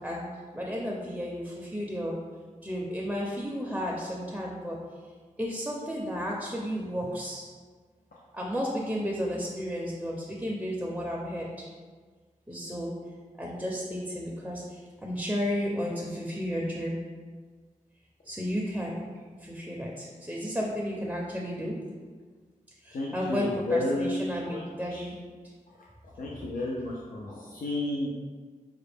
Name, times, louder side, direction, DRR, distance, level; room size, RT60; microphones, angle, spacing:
voice 1, 0.0-2.1 2.6-4.8 5.4-7.5 8.3-11.7 12.5-12.9 13.4-17.0 18.2-19.0 19.4-21.8 22.8-25.2, equal, 10° right, -3 dB, 0.5 m, -33 dB
voice 2, 22.9-24.6 24.9-25.1 26.2-28.1, left 2 dB, 80° left, -4 dB, 0.5 m, -31 dB
4.9 x 2.1 x 3.3 m, 1.5 s
wide cardioid pair, 100°, 14 cm